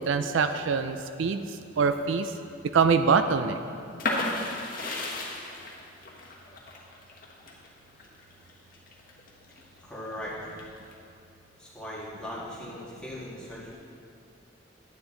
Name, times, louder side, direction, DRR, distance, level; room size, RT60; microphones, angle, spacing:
voice 1, 0.0-2.3 2.7-3.6, right 5 dB, 70° right, 9 dB, 0.4 m, -24 dB
sound 1, 4.0-9.6 10.1-10.9, left 2 dB, 45° left, 1.2 m, -34 dB
voice 2, 9.8-10.5 11.6-13.8, left 1 dB, 5° left, -7 dB, 1.8 m, -39 dB
10.0 x 9.6 x 3.8 m, 2.6 s
head